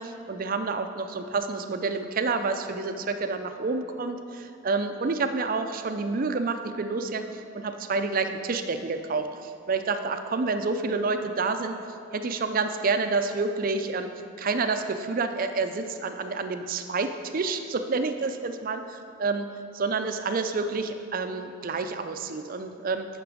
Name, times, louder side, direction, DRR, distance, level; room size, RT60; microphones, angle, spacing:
voice 1, 0.0-11.8 12.1-14.1 14.4-18.8 19.2-23.1, right 4 dB, 40° right, 8 dB, 0.5 m, -29 dB
8.3 x 5.9 x 6.2 m, 2.7 s
head